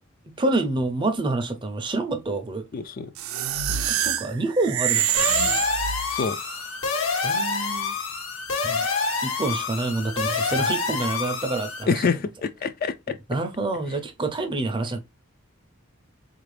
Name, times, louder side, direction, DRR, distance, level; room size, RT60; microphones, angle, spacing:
voice 1, 0.3-2.7 3.9-5.3 7.2-7.9 8.6-8.9 9.2-12.0 13.3-15.0, right 2 dB, 25° right, 0.5 m, -27 dB
voice 2, 2.7-3.1 6.1-6.4 11.9-13.1, left 5 dB, 45° left, 0.3 m, -26 dB
sound 1, 3.2-6.4, right 10 dB, 85° right, 0.5 m, -25 dB
sound 2, 5.2-11.8, left 4 dB, 80° left, 1.2 m, -27 dB
4.1 x 2.5 x 3.2 m
head